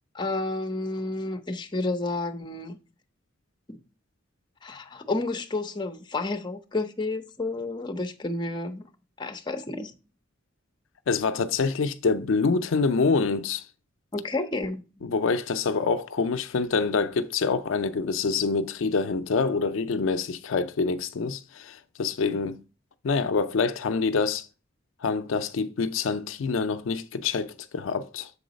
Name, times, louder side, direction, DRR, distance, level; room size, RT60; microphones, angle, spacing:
voice 1, 0.1-2.8 3.7-3.8 4.6-8.9 9.2-9.9 14.1-14.8, left 2 dB, 20° left, 0.7 m, -30 dB
voice 2, 11.1-13.6 15.0-22.6 23.0-24.5 25.0-28.3, left 4 dB, 75° left, 0.4 m, -26 dB
7.0 x 3.8 x 5.1 m
head